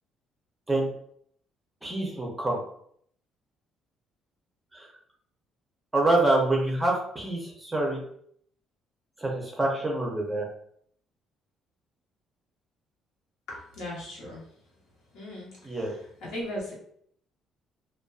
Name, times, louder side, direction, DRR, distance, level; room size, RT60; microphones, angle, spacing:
voice 1, 1.8-2.6 4.7-4.9 5.9-8.0 9.2-10.5 15.6-15.9, right 2 dB, 10° right, -1 dB, 0.5 m, -26 dB
voice 2, 13.5-14.4 15.1-16.7, left 1 dB, 80° left, -5 dB, 1.0 m, -38 dB
2.5 x 2.2 x 2.3 m, 0.65 s
cardioid pair, 155°, 0 cm